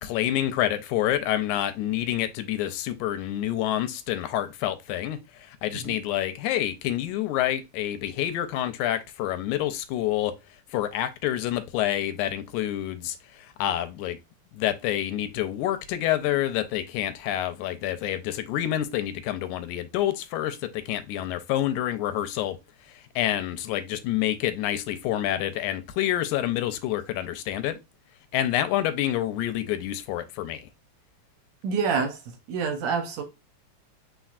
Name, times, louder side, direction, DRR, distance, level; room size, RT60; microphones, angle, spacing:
voice 1, 0.0-10.3 10.7-14.2 14.5-22.6 22.9-27.8 28.3-30.7, left 12 dB, 90° left, 2.0 m, -28 dB
voice 2, 31.6-32.2 32.5-33.2, right 5 dB, 75° right, 1.8 m, -26 dB
4.3 x 4.1 x 2.4 m
omnidirectional pair, 3.4 m